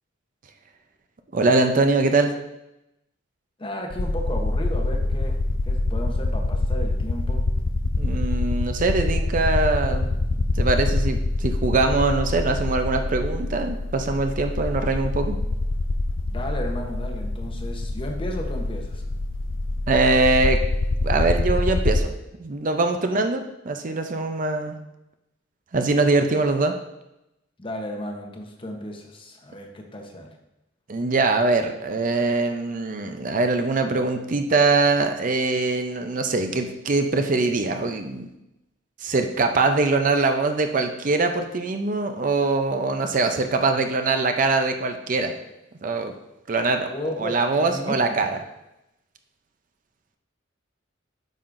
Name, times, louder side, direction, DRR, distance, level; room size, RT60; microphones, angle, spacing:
voice 1, 1.3-2.3 8.0-10.1 10.5-15.4 19.9-20.6 21.0-22.1 22.4-24.8 25.7-26.7 30.9-38.3 39.0-45.4 45.8-46.1 46.5-46.9 47.2-48.4, right 3 dB, 40° right, 6 dB, 0.5 m, -22 dB
voice 2, 3.6-5.4 5.6-7.5 16.3-19.0 23.1-23.2 27.6-30.4 46.9-48.2, equal, 25° left, 3 dB, 0.8 m, -34 dB
sound 1, 3.9-22.0, left 2 dB, 70° left, 0.5 m, -25 dB
9.0 x 5.6 x 2.6 m, 0.90 s
head